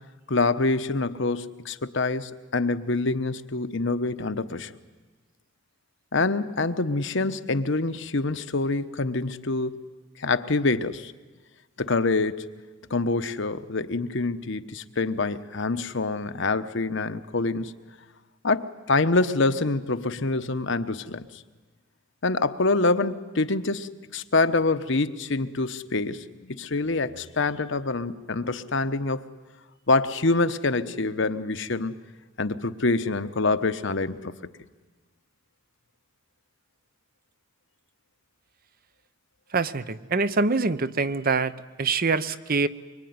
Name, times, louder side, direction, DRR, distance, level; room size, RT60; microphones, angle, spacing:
voice 1, 0.3-4.7 6.1-9.9 10.2-11.1 11.8-12.5 12.9-17.7 18.4-21.4 22.2-29.2 29.9-31.9 32.4-34.4, left 3 dB, 65° left, 11 dB, 1.1 m, -26 dB
voice 2, 39.5-42.7, right 4 dB, 45° right, 14 dB, 0.8 m, -25 dB
24.0 x 24.0 x 9.5 m, 1.3 s
head